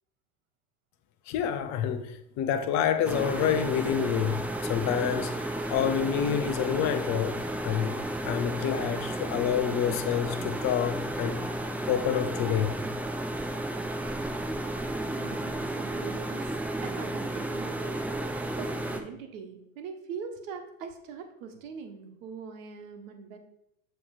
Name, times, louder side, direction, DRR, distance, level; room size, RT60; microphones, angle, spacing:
voice 1, 1.3-4.4 4.7-7.4 7.6-8.0 8.2-11.4 11.9-12.7, left 9 dB, 40° left, 0.7 m, -28 dB
sound 1, 3.0-19.0, right 1 dB, 5° right, 0.4 m, -33 dB
voice 2, 15.1-18.0 18.6-23.4, right 6 dB, 60° right, 1.2 m, -42 dB
7.0 x 3.2 x 4.7 m
hypercardioid pair, 85°, 43 cm